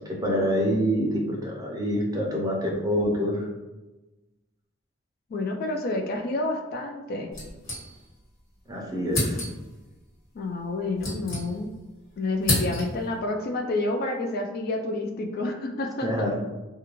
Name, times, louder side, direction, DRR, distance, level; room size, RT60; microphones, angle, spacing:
voice 1, 0.2-3.5 8.7-9.4 16.0-16.3, equal, 20° right, -1 dB, 0.5 m, -26 dB
voice 2, 5.3-7.3 10.3-11.7 12.2-16.3, left 2 dB, 50° left, 4 dB, 0.3 m, -29 dB
sound 1, 7.3-8.3 8.6-8.7 9.1-9.8 10.6-11.9 12.1-13.1, left 1 dB, 80° left, 1.3 m, -30 dB
2.4 x 2.1 x 2.9 m, 1.1 s
head